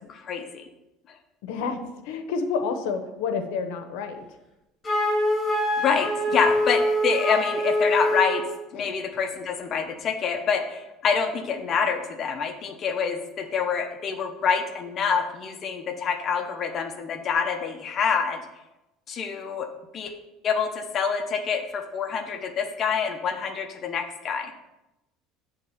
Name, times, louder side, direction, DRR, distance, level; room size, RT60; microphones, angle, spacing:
voice 1, 0.1-0.6 1.1-1.2 5.8-8.5 8.7-18.4 19.1-19.7 19.9-20.1 20.4-24.5, left 6 dB, 30° left, 5 dB, 0.8 m, -26 dB
voice 2, 1.4-1.8 2.0-4.2 8.7-8.9, left 5 dB, 85° left, 6 dB, 0.9 m, -29 dB
Wind instrument woodwind instrument, 4.8-8.6, equal, 15° left, 2.1 m, -24 dB
8.5 x 3.7 x 5.6 m, 0.96 s
cardioid pair, 160°, 0 cm